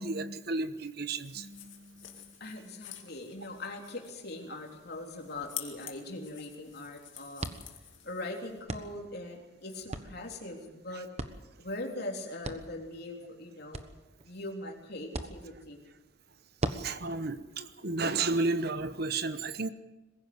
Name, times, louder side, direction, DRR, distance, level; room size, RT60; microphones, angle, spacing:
voice 1, 0.0-2.1 16.7-19.7, right 3 dB, 50° right, 12 dB, 1.1 m, -33 dB
sound 1, 1.1-8.6, left 12 dB, 70° left, 2.3 m, -48 dB
voice 2, 2.4-7.5 8.0-11.1 11.6-13.9 14.2-15.8, left 2 dB, 55° left, 1 dB, 3.6 m, -41 dB
sound 2, 4.7-18.9, right 1 dB, 35° right, 1.2 m, -44 dB
22.0 x 15.5 x 8.0 m, 1.1 s
head